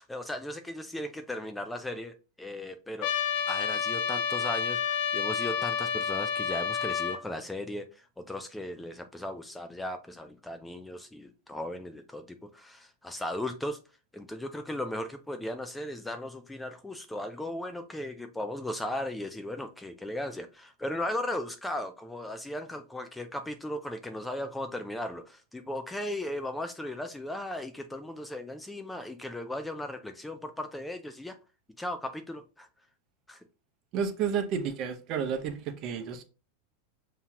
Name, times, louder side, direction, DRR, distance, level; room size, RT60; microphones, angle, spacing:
voice 1, 0.0-3.1 3.5-13.8 14.1-31.4 31.8-32.7 33.3-33.4, left 1 dB, 5° left, 0.3 m, -37 dB
Trumpet, 3.0-7.2, left 7 dB, 60° left, 0.6 m, -29 dB
voice 2, 33.9-36.2, right 7 dB, 45° right, 0.8 m, -31 dB
5.5 x 2.8 x 2.4 m
supercardioid pair, 130°, 0 cm